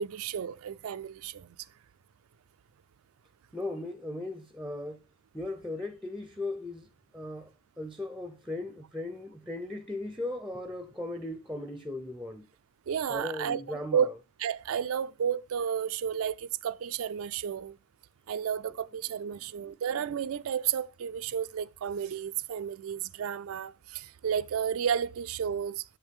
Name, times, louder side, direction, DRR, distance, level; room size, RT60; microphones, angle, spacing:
voice 1, 0.0-1.6 12.9-14.1 14.4-17.8 18.3-25.8, right 8 dB, 80° right, 0.4 m, -32 dB
voice 2, 3.5-5.0 5.3-6.8 7.1-7.5 7.8-12.4 13.1-14.0, left 2 dB, ahead, 0.6 m, -37 dB
7.9 x 6.6 x 3.5 m
head